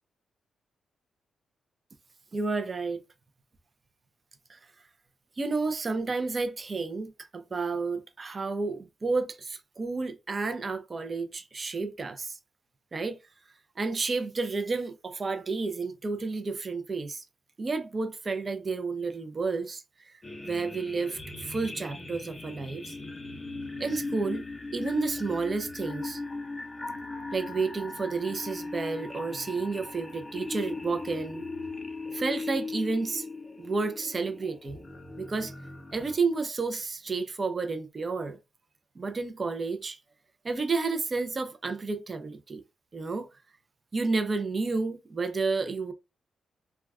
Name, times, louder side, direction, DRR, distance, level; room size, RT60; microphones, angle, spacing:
voice 1, 2.3-3.0 4.5-4.6 5.4-12.4 12.9-13.2 13.8-17.2 17.6-20.1 20.4-22.9 23.8-24.4 24.7-26.2 27.3-31.4 32.1-33.2 33.6-34.8 35.2-35.5 35.9-38.4 39.0-40.0 40.4-42.6 42.9-43.3 43.9-45.9, right 4 dB, 35° right, 0.5 m, -31 dB
sound 1, 20.2-36.2, left 3 dB, 20° left, 0.6 m, -38 dB
2.2 x 2.2 x 3.4 m
cardioid pair, 95°, 0 cm